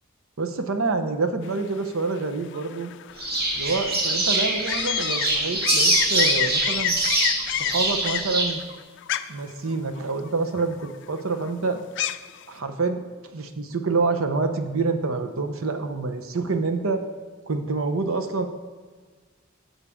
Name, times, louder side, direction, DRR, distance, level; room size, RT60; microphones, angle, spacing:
voice 1, 0.4-2.9 3.5-7.0 7.5-8.6 9.3-11.8 12.5-17.0 17.5-18.5, right 3 dB, 80° right, 8 dB, 0.8 m, -27 dB
sound 1, 1.4-12.5, left 12 dB, 60° left, 0.4 m, -31 dB
sound 2, 3.2-8.5, right 2 dB, 50° right, 1.9 m, -24 dB
15.5 x 5.7 x 3.7 m, 1.5 s
head